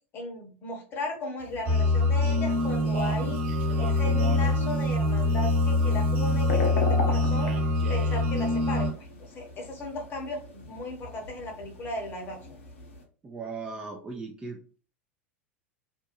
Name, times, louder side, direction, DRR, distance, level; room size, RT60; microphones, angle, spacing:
voice 1, 0.1-3.4 3.8-12.6, left 2 dB, 30° left, 2 dB, 0.9 m, -36 dB
sound 1, 1.4-13.0, left 3 dB, 65° left, 0.7 m, -39 dB
sound 2, 1.7-8.9, left 2 dB, 40° right, 1.2 m, -24 dB
Speech, 2.5-6.7 7.4-8.3, right 4 dB, 60° right, 0.5 m, -42 dB
voice 2, 13.2-14.8, right 4 dB, 15° right, 0 dB, 0.4 m, -38 dB
2.5 x 2.1 x 2.9 m, 0.39 s
figure-of-eight pair, 85°, 7 cm